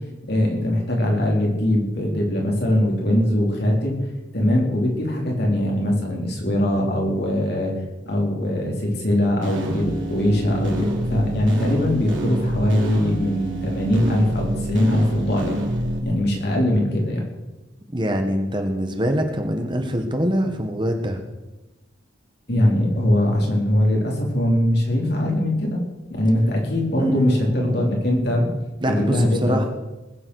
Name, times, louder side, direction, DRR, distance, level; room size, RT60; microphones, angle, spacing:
voice 1, 0.3-4.0 4.3-7.7 8.1-15.6 16.0-17.3 22.5-25.8 26.1-28.5 28.9-29.7, left 1 dB, 55° left, -1 dB, 4.3 m, -21 dB
sound 1, 9.4-16.0, right 1 dB, 75° right, 3.5 m, -28 dB
voice 2, 17.9-21.2 27.0-27.9 28.8-29.6, equal, 25° right, 4 dB, 1.5 m, -24 dB
20.0 x 8.9 x 6.5 m, 1.1 s
head